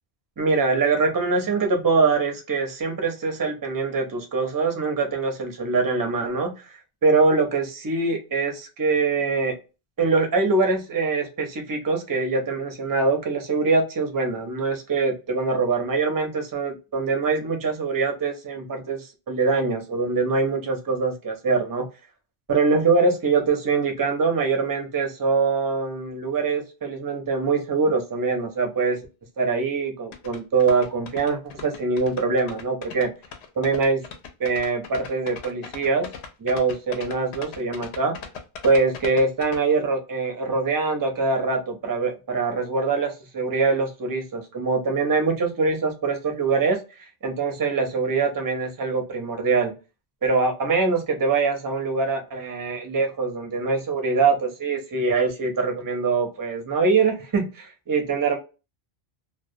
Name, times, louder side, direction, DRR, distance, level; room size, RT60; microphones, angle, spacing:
voice 1, 0.4-6.6 7.0-9.5 10.0-21.9 22.5-29.0 29.4-33.1 33.6-34.0 34.4-36.1 36.4-38.2 38.6-46.8 47.2-49.7 50.2-58.4, right 4 dB, 30° right, 4 dB, 0.4 m, -23 dB
sound 1, 30.1-39.6, left 6 dB, 85° left, 0.8 m, -38 dB
2.2 x 2.2 x 2.5 m, 0.31 s
omnidirectional pair, 1.1 m